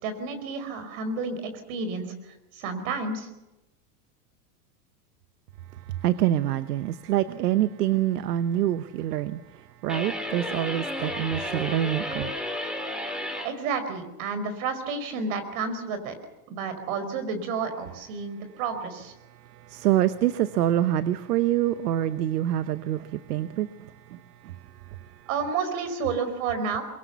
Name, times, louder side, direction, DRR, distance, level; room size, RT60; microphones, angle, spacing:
voice 1, 0.0-2.1 2.5-3.3 13.4-16.1 16.5-19.1 25.3-26.8, right 4 dB, 60° right, 5.1 m, -30 dB
voice 2, 6.0-9.4 9.8-12.3 19.7-23.7, right 12 dB, 85° right, 1.1 m, -25 dB
sound 1, 9.9-13.5, left 1 dB, ahead, 3.3 m, -32 dB
23.5 x 22.5 x 7.0 m
supercardioid pair, 125°, 46 cm